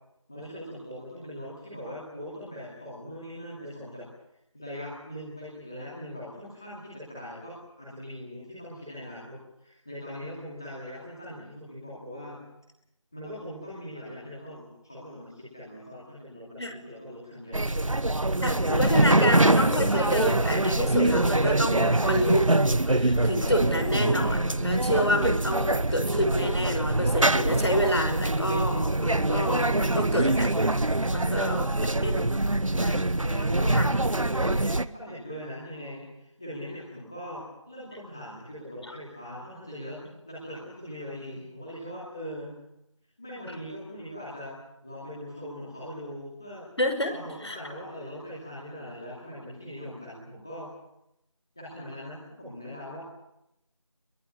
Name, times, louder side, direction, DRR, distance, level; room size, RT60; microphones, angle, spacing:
voice 1, 0.3-4.0 4.5-12.4 13.1-17.7 31.0-32.3 33.2-37.4 37.7-40.0 40.2-42.5 43.2-44.5 44.8-46.6 47.1-50.7 51.6-53.0, equal, 5° left, -9 dB, 2.6 m, -41 dB
sound 1, 17.5-34.8, right 2 dB, 75° right, 1.3 m, -24 dB
voice 2, 18.4-30.5 31.1-32.5 32.8-33.1 33.7-33.8 38.9-39.0 43.5-43.6 46.8-47.1 47.4-47.6, equal, 55° left, 5 dB, 5.5 m, -28 dB
27.0 x 22.5 x 9.9 m, 0.84 s
figure-of-eight pair, 180°, 17 cm